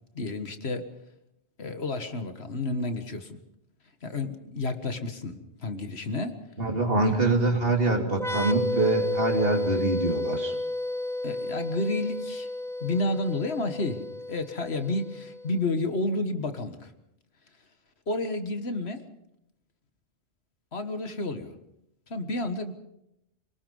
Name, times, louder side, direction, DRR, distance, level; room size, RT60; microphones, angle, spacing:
voice 1, 0.1-0.9 1.6-3.4 4.0-6.4 7.1-7.2 11.2-12.5 12.8-16.9 18.1-19.0 20.7-21.6 22.1-22.7, left 2 dB, 70° left, 8 dB, 1.8 m, -31 dB
voice 2, 6.6-10.5, right 2 dB, 55° right, 2 dB, 3.4 m, -24 dB
sound 1, 8.1-15.7, left 1 dB, 5° left, 1.0 m, -32 dB
26.0 x 19.5 x 5.5 m, 0.83 s
omnidirectional pair, 1.1 m